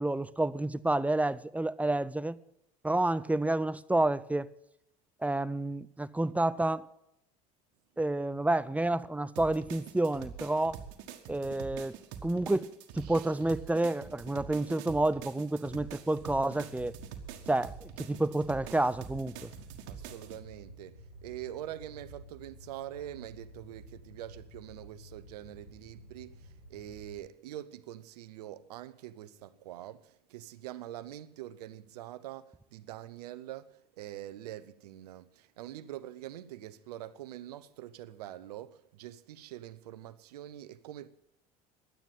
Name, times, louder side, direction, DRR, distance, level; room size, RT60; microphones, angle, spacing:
voice 1, 0.0-2.4 2.8-4.5 5.2-6.9 8.0-10.8 11.3-12.0 12.2-17.0 17.5-19.5, right 2 dB, 5° right, 0.5 m, -29 dB
sound 1, 9.4-20.4, right 8 dB, 70° right, 1.5 m, -46 dB
Fire, 16.3-27.2, equal, 90° left, 6.4 m, -52 dB
voice 2, 19.9-33.7 34.0-41.1, right 13 dB, 85° right, 0.7 m, -44 dB
11.5 x 9.1 x 9.1 m
hypercardioid pair, 80°, 20 cm